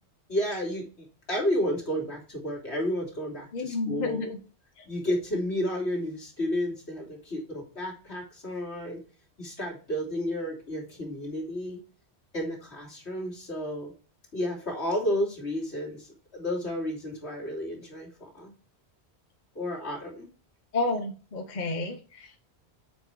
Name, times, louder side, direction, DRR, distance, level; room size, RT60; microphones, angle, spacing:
voice 1, 0.3-4.3 4.8-9.0 9.4-11.8 12.3-13.9 14.3-18.5 19.5-20.3, equal, 80° left, -2 dB, 3.2 m, -32 dB
voice 2, 3.5-4.4 4.8-4.9 20.7-22.4, left 3 dB, 45° left, 5 dB, 1.0 m, -31 dB
7.7 x 5.1 x 4.7 m, 0.37 s
omnidirectional pair, 1.1 m